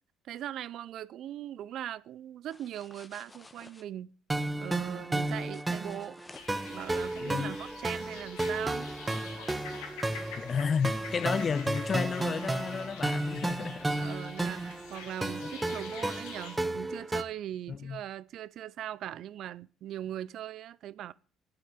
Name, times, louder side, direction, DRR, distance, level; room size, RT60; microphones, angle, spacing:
voice 1, 0.2-4.1 4.6-6.2 6.7-8.9 14.0-21.1, right 11 dB, 60° right, 0.6 m, -40 dB
sound 1, 2.5-3.8 5.0-6.8, left 2 dB, 20° left, 1.5 m, -54 dB
sound 2, 4.3-17.2, right 2 dB, 15° right, 1.0 m, -33 dB
sound 3, 6.3-16.6, left 6 dB, 80° left, 2.3 m, -47 dB
voice 2, 7.2-7.6 10.4-13.9 15.4-15.5 17.7-18.0, left 6 dB, 40° left, 0.4 m, -32 dB
8.9 x 7.5 x 8.8 m
hypercardioid pair, 60°, 0 cm